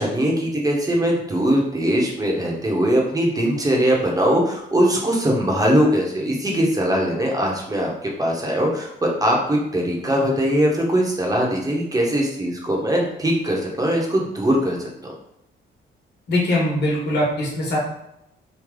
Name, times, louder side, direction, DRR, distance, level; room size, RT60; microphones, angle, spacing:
voice 1, 0.0-7.9 8.2-14.9, equal, 20° right, -1 dB, 1.0 m, -21 dB
voice 2, 16.3-17.8, left 1 dB, 55° left, -4 dB, 1.4 m, -21 dB
3.4 x 2.3 x 3.7 m, 0.80 s
cardioid pair, 90°, 20 cm